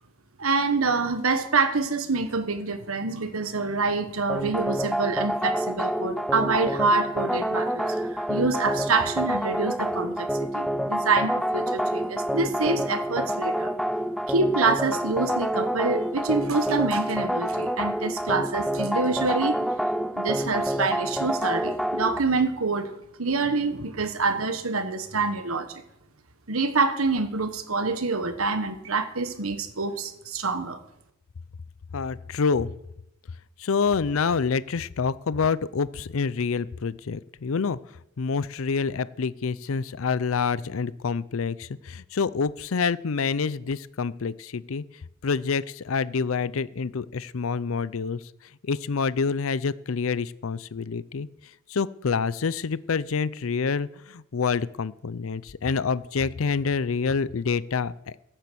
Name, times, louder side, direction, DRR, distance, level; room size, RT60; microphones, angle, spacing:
voice 1, 0.4-13.7 14.3-19.6 20.1-22.9 23.2-25.8 26.5-30.8, right 3 dB, 90° right, 9 dB, 1.5 m, -26 dB
sound 1, 4.3-22.2, equal, ahead, 0.4 m, -27 dB
voice 2, 31.9-32.7 33.6-37.8 38.2-44.8 45.2-48.2 48.6-51.3 51.7-58.2, left 5 dB, 75° left, 18 dB, 0.5 m, -27 dB
16.0 x 9.0 x 7.0 m, 0.83 s
head